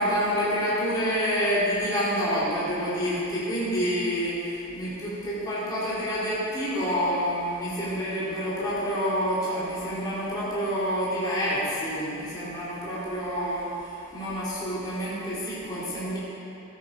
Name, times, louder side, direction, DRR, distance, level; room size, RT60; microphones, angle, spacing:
voice 1, 0.0-16.2, equal, 20° left, -9 dB, 2.6 m, -28 dB
13.5 x 9.4 x 4.8 m, 2.9 s
head